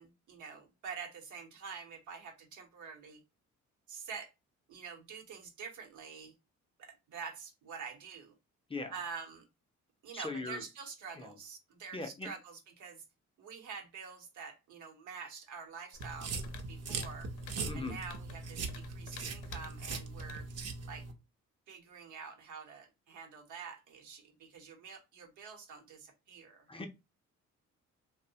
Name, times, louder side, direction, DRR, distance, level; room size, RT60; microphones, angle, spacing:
voice 1, 0.0-3.2 3.9-4.3 4.7-6.3 6.8-8.3 8.9-9.5 10.0-13.0 13.4-16.3 16.7-17.3 17.7-20.5 20.8-21.1 21.7-26.7, right 6 dB, 80° right, 0.9 m, -47 dB
voice 2, 10.1-10.6 11.1-11.4 11.9-12.3 17.7-18.0 26.7-26.9, left 3 dB, 20° left, 0.4 m, -39 dB
sound 1, 15.9-21.1, left 7 dB, 80° left, 0.5 m, -53 dB
sound 2, 16.0-21.1, right 4 dB, 55° right, 0.6 m, -40 dB
2.7 x 2.1 x 2.7 m
cardioid pair, 90°, 30 cm